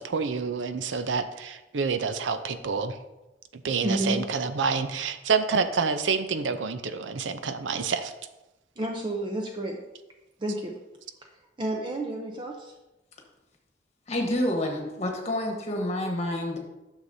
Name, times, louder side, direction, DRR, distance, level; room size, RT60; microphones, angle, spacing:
voice 1, 0.0-3.0 3.6-8.1, right 5 dB, 90° right, 10 dB, 0.5 m, -28 dB
voice 2, 3.8-4.2 8.8-9.8 10.4-10.8 11.2-11.3 11.6-12.7, right 1 dB, 25° right, 2 dB, 0.6 m, -30 dB
voice 3, 14.1-16.6, left 1 dB, 35° left, 2 dB, 1.2 m, -28 dB
9.7 x 6.4 x 2.7 m, 1.0 s
head